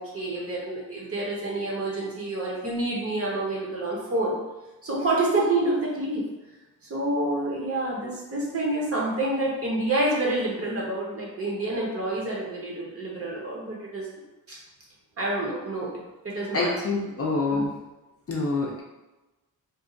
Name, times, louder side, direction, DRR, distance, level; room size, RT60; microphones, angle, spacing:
voice 1, 0.0-4.4 4.8-6.2 6.9-14.1 14.5-14.6 15.2-15.9 16.2-16.7 17.5-17.7, right 2 dB, 40° right, -4 dB, 0.8 m, -28 dB
voice 2, 16.4-17.7 18.3-18.8, left 3 dB, 40° left, -2 dB, 0.5 m, -26 dB
2.6 x 2.4 x 3.7 m, 1.1 s
wide cardioid pair, 170°, 38 cm